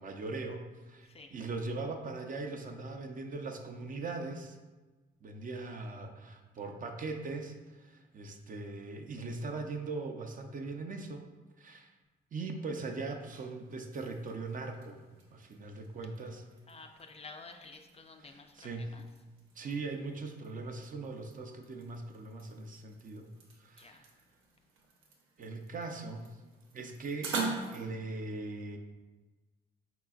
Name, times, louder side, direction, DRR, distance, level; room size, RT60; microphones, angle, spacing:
voice 1, 0.0-4.6 5.2-11.3 11.6-11.9 12.3-15.0 15.3-16.4 18.2-18.9 19.6-23.3 23.6-24.1 25.4-26.4 26.7-27.4 27.7-28.8, right 3 dB, 40° right, 4 dB, 0.5 m, -40 dB
sound 1, 13.0-27.8, right 3 dB, 90° right, 0.8 m, -45 dB
voice 2, 16.7-19.0 23.8-24.0, left 3 dB, 30° left, 4 dB, 0.4 m, -51 dB
4.9 x 3.8 x 2.3 m, 1.2 s
cardioid pair, 90°, 20 cm